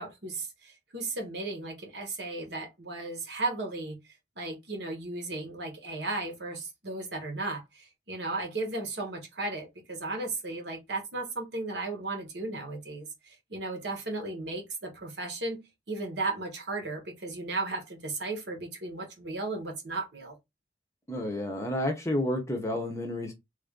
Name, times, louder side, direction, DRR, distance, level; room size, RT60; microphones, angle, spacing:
voice 1, 0.0-4.0 4.4-20.3, right 2 dB, 65° right, 1.1 m, -35 dB
voice 2, 21.1-23.3, left 1 dB, 15° left, 0.7 m, -30 dB
3.2 x 2.5 x 3.6 m
head